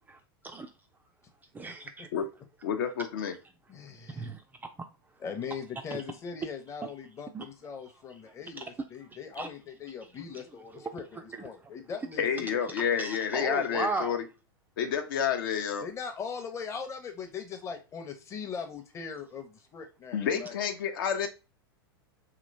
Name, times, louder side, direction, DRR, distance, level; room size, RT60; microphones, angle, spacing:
voice 1, 0.1-0.7 1.5-2.1 3.9-4.2 5.9-6.0 6.8-6.9 7.3-7.5 8.6-8.7 9.3-9.5 10.3-10.4 10.7-10.9 11.3-11.7 13.0-14.2, right 3 dB, 15° right, 0.3 m, -36 dB
voice 2, 2.6-3.3 12.2-14.2 14.8-15.9 20.1-21.3, left 7 dB, 60° left, 0.5 m, -29 dB
voice 3, 3.7-4.2 5.2-12.6 15.8-20.6, left 6 dB, 25° left, 0.7 m, -40 dB
2.9 x 2.9 x 2.6 m
figure-of-eight pair, 95°, 13 cm